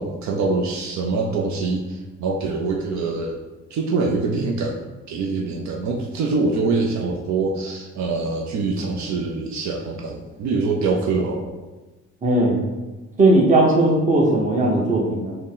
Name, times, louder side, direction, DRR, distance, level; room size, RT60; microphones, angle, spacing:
voice 1, 0.0-3.4 3.7-11.5, right 3 dB, 70° right, 0 dB, 0.5 m, -24 dB
voice 2, 12.2-12.6 13.2-15.4, right 2 dB, 25° right, -1 dB, 0.9 m, -17 dB
4.0 x 2.1 x 3.8 m, 1.2 s
cardioid pair, 90°, 30 cm